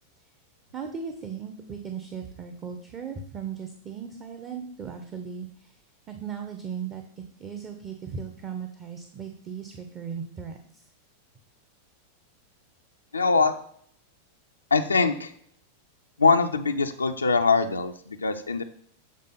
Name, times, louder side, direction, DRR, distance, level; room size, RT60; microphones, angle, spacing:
voice 1, 0.7-5.8 6.1-10.9, right 6 dB, 25° right, 5 dB, 0.8 m, -37 dB
voice 2, 13.1-13.5 14.7-15.3 16.2-18.6, left 4 dB, 75° left, 6 dB, 0.4 m, -22 dB
7.6 x 3.5 x 5.6 m, 0.62 s
figure-of-eight pair, 90°, 0 cm